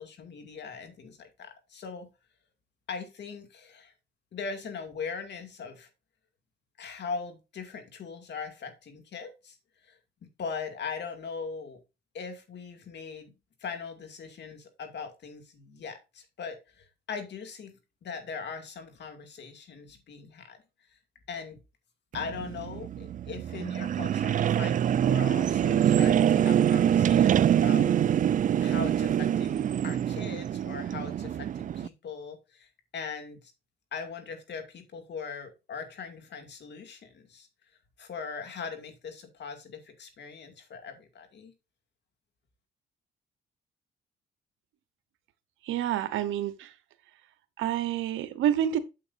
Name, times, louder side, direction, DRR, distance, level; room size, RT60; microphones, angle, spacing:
voice 1, 0.0-2.1 2.9-3.9 4.3-5.9 6.8-9.6 9.8-10.0 10.4-11.8 12.1-13.3 13.6-17.7 18.0-20.6 20.9-21.0 21.3-21.6 22.1-27.9 28.6-33.5 33.9-37.5 38.0-41.5, left 5 dB, 60° left, 2.3 m, -40 dB
sound 1, 22.1-31.9, right 10 dB, 40° right, 0.4 m, -25 dB
voice 2, 45.6-46.7 47.6-48.8, right 11 dB, 90° right, 1.0 m, -28 dB
8.7 x 7.6 x 2.6 m
cardioid pair, 90°, 20 cm